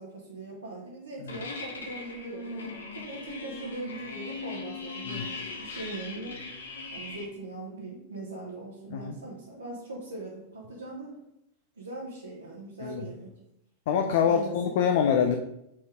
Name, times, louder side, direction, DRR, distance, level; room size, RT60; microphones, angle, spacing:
voice 1, 0.0-2.6 2.9-6.4 6.9-11.2 11.8-13.3 14.2-14.6, right 2 dB, 75° right, -4 dB, 1.3 m, -40 dB
sound 1, 1.3-7.3, left 3 dB, 70° left, 1.0 m, -39 dB
voice 2, 13.9-15.4, left 7 dB, 55° left, 5 dB, 0.5 m, -25 dB
5.3 x 4.6 x 5.1 m, 0.82 s
figure-of-eight pair, 90°, 0 cm